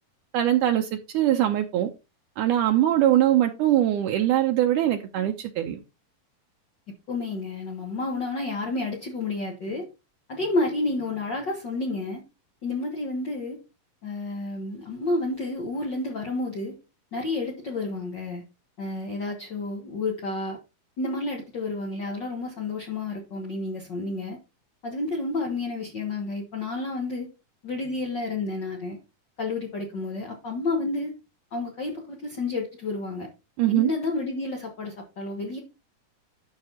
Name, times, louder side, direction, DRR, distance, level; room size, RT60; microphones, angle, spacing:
voice 1, 0.3-1.9 2.4-5.8 33.6-33.9, right 12 dB, 80° right, 2.0 m, -22 dB
voice 2, 7.1-9.9 10.3-12.2 12.6-13.6 14.0-16.8 17.1-18.4 18.8-20.6 21.0-24.4 24.8-27.3 27.6-29.0 29.4-31.1 31.5-33.3 33.7-35.6, left 2 dB, 60° left, 1.2 m, -30 dB
12.0 x 5.8 x 2.8 m
omnidirectional pair, 4.1 m